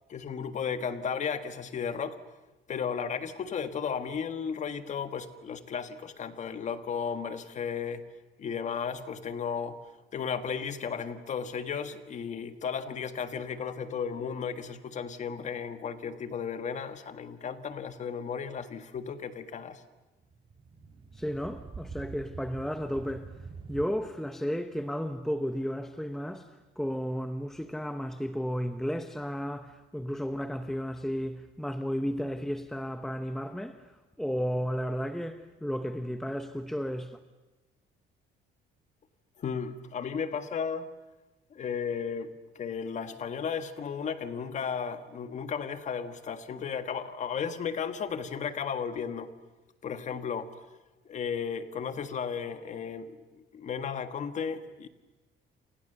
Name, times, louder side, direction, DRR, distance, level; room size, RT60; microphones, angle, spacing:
voice 1, 0.1-2.2 2.7-8.0 8.4-9.8 10.1-19.8 39.4-40.9 41.5-49.3 49.8-50.5 51.0-53.2 53.5-54.9, left 6 dB, 35° left, 1.6 m, -34 dB
sound 1, 20.2-23.9, right 5 dB, 25° right, 2.6 m, -45 dB
voice 2, 21.2-23.3 23.7-26.5 26.8-29.7 29.9-33.8 34.2-37.2, equal, ahead, 0.8 m, -33 dB
30.0 x 28.5 x 6.8 m
cardioid pair, 170°, 20 cm